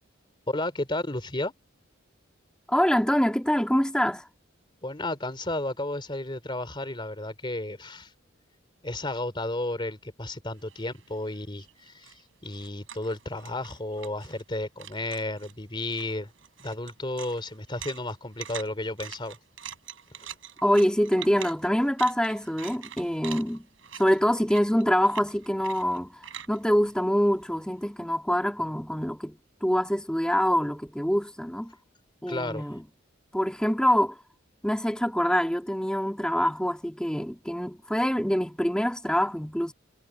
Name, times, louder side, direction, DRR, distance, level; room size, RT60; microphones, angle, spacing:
voice 1, 0.5-1.5 4.8-8.1 8.8-12.2 12.4-16.3 16.6-19.4 20.2-20.3 32.3-32.6, left 2 dB, 25° left, 3.3 m, -33 dB
voice 2, 2.7-4.3 20.6-23.7 24.0-31.7 32.2-32.8 33.3-34.2 34.6-39.7, equal, 5° left, 2.0 m, -25 dB
sound 1, 10.6-14.5 14.8-15.6 15.9-27.7, right 9 dB, 70° right, 5.9 m, -44 dB
head